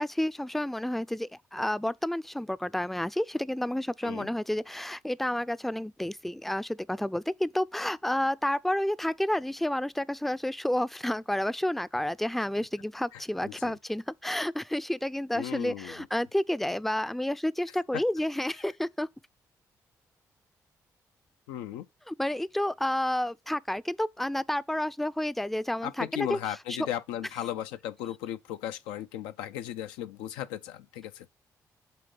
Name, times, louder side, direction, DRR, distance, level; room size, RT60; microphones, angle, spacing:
voice 1, 0.0-19.1 22.1-26.4 26.8-26.9, left 1 dB, ahead, 0.4 m, -30 dB
voice 2, 13.1-13.8 15.3-15.9 17.9-18.0 21.5-21.9 25.8-31.3, left 11 dB, 80° left, 0.4 m, -36 dB
7.7 x 2.8 x 5.2 m
hypercardioid pair, 40°, 9 cm